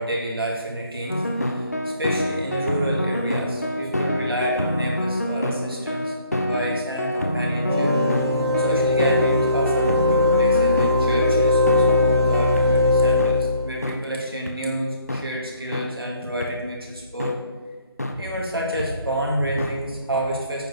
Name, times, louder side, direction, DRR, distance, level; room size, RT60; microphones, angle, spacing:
voice 1, 0.0-7.9 8.6-17.4 18.1-20.7, equal, 65° right, -2 dB, 2.7 m, -29 dB
sound 1, 1.1-12.6 13.2-13.3 13.8-14.0 14.5-14.6 15.1-15.2 15.7-15.9 16.4-16.5 17.2-17.3 18.0-18.1 18.8-18.9 19.6-19.7, equal, 40° left, 0.7 m, -26 dB
sound 2, 7.7-13.8, left 2 dB, 85° right, 2.0 m, -20 dB
8.8 x 4.8 x 6.5 m, 1.4 s
figure-of-eight pair, 175°, 13 cm